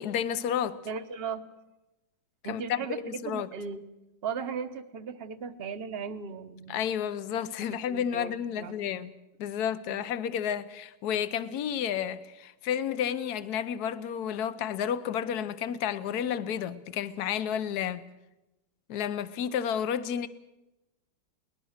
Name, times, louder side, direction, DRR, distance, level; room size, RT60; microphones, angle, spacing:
voice 1, 0.0-0.8 2.5-3.5 6.7-9.1 9.4-18.0 18.9-20.3, left 9 dB, 60° left, 1.3 m, -31 dB
voice 2, 0.9-1.4 2.4-3.8 4.2-6.9 7.6-8.9 9.9-10.0, right 6 dB, 40° right, 1.0 m, -37 dB
22.0 x 19.5 x 6.5 m
omnidirectional pair, 2.1 m